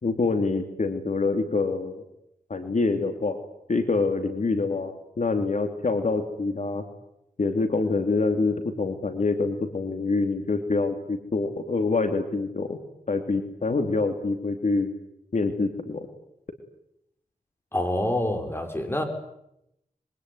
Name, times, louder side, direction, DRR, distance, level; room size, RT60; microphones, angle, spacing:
voice 1, 0.0-2.0 2.5-3.4 3.7-6.8 7.4-12.8 13.1-14.9 15.3-16.1, left 3 dB, 55° left, 6 dB, 2.8 m, -26 dB
voice 2, 17.7-19.0, left 1 dB, 15° left, 5 dB, 5.7 m, -26 dB
25.5 x 23.5 x 9.7 m, 0.80 s
wide cardioid pair, 85°, 15 cm